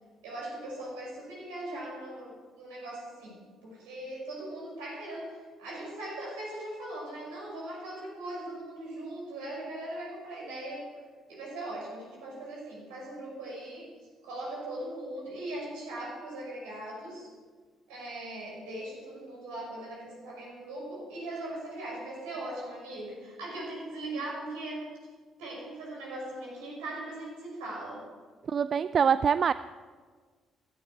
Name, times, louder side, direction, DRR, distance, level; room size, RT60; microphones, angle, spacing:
voice 1, 0.2-10.9 11.3-13.9 14.2-17.3 17.9-24.9 25.4-28.0, right 1 dB, 70° right, -3 dB, 5.4 m, -39 dB
voice 2, 28.5-29.5, right 7 dB, 45° right, 15 dB, 0.3 m, -24 dB
16.0 x 13.0 x 4.8 m, 1.5 s
figure-of-eight pair, 45°, 0 cm